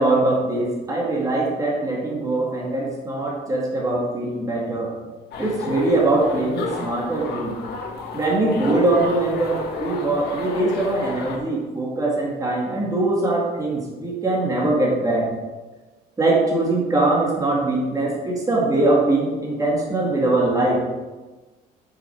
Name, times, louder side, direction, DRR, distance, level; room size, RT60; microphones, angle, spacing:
voice 1, 0.0-4.9 5.4-7.6 8.1-15.3 16.2-20.8, right 2 dB, 20° right, -3 dB, 2.1 m, -22 dB
sound 1, 5.3-11.4, left 4 dB, 70° left, 1.5 m, -32 dB
8.2 x 6.3 x 4.5 m, 1.2 s
cardioid pair, 110°, 17 cm